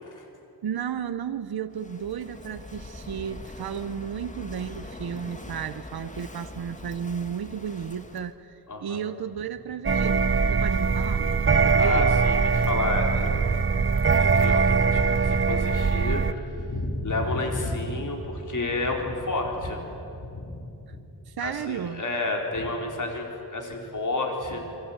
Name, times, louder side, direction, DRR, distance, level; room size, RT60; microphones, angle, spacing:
voice 1, 0.6-12.2 20.9-21.0 21.3-22.0, right 8 dB, 70° right, 11 dB, 0.9 m, -33 dB
Walk footsteps / Wind / Waves surf, 1.7-8.3, left 1 dB, 20° left, 1.7 m, -42 dB
voice 2, 8.7-9.0 11.8-13.8 14.2-19.8 20.2-20.6 21.4-24.7, left 2 dB, 50° left, 1 dB, 4.6 m, -30 dB
sound 1, 9.8-16.3, right 5 dB, 30° right, 0.8 m, -22 dB
28.0 x 23.5 x 9.0 m, 2.8 s
wide cardioid pair, 110°, 39 cm